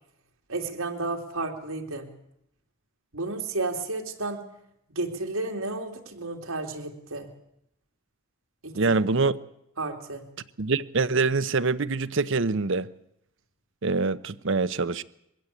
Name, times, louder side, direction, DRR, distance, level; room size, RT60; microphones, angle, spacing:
voice 1, 0.5-2.1 3.1-4.4 4.9-7.3 8.6-8.7 9.8-10.3, right 3 dB, 80° right, 3.1 m, -32 dB
voice 2, 8.7-9.4 10.6-12.9 13.8-15.0, right 4 dB, 60° right, 0.8 m, -25 dB
22.5 x 15.5 x 8.5 m
head